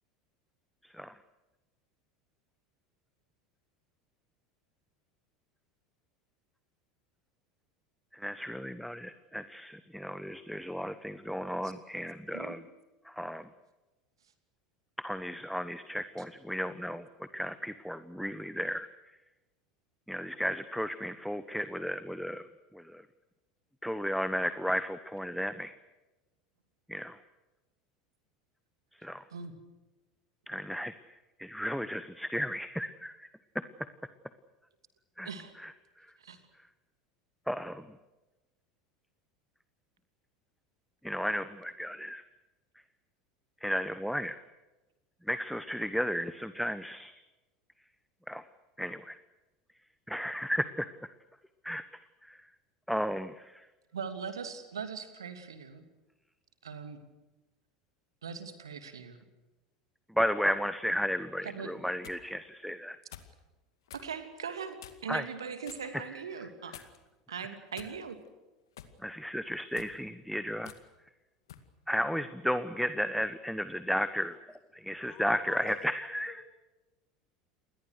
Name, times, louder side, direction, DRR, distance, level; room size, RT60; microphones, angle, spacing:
voice 1, 0.8-1.2 8.1-12.6 13.0-13.5 15.0-19.2 20.1-22.5 22.7-23.1 23.8-25.7 26.9-27.2 28.9-29.3 30.5-33.3 33.5-33.6 35.2-36.1 37.5-38.0 41.0-42.2 43.6-44.4 45.2-47.2 48.3-48.5 48.8-49.2 50.1-51.1 51.6-51.8 52.2-52.5 52.9-53.7 60.1-63.0 65.1-65.3 65.9-66.9 67.4-67.6 69.0-70.7 71.9-74.4 74.7-76.4, equal, ahead, 12 dB, 1.1 m, -34 dB
voice 2, 53.9-55.8 56.6-57.0 58.2-59.2 61.4-61.7 63.9-66.7 67.3-68.2, right 6 dB, 75° right, 9 dB, 2.8 m, -40 dB
sound 1, 61.7-62.2 63.1-63.4 63.9-64.1 64.8-65.1 65.6-65.9 66.7-67.1 67.7-68.3 68.8-69.0 69.6-70.0 70.6-70.8 71.5-71.7, left 10 dB, 65° left, 2.2 m, -50 dB
voice 3, 74.8-75.8, left 11 dB, 40° left, 9 dB, 5.1 m, -48 dB
29.0 x 22.0 x 6.6 m, 1.1 s
figure-of-eight pair, 75°, 3 cm